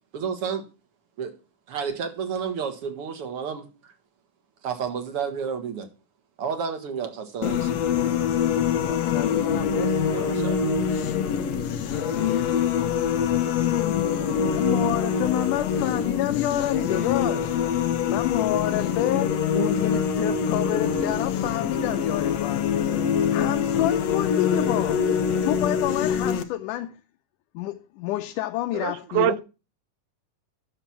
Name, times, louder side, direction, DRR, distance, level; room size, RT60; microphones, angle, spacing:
voice 1, 0.1-0.6 1.2-1.3 1.7-3.9 4.6-5.9 6.4-7.7 10.1-10.6, right 6 dB, 55° right, 2.1 m, -31 dB
sound 1, 7.4-26.4, left 7 dB, 65° left, 1.9 m, -24 dB
voice 2, 8.9-10.4 11.4-11.5 12.0-12.5 14.4-17.6 18.1-22.9 23.3-25.0 25.4-27.0 27.5-29.4, left 15 dB, 90° left, 2.2 m, -29 dB
voice 3, 28.7-29.4, right 15 dB, 85° right, 2.2 m, -24 dB
10.5 x 7.0 x 5.8 m
omnidirectional pair, 3.5 m